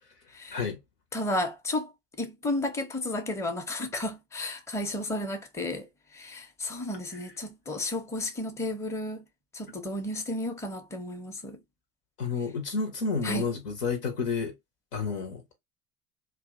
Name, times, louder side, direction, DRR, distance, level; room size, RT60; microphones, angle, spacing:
voice 1, 1.1-1.9 2.2-5.9 6.1-9.2 9.5-11.6 13.2-13.5, left 1 dB, 5° left, 0.6 m, -33 dB
voice 2, 12.2-14.5 14.9-15.6, left 5 dB, 85° left, 1.0 m, -30 dB
2.7 x 2.3 x 2.4 m
hypercardioid pair, 65°, 46 cm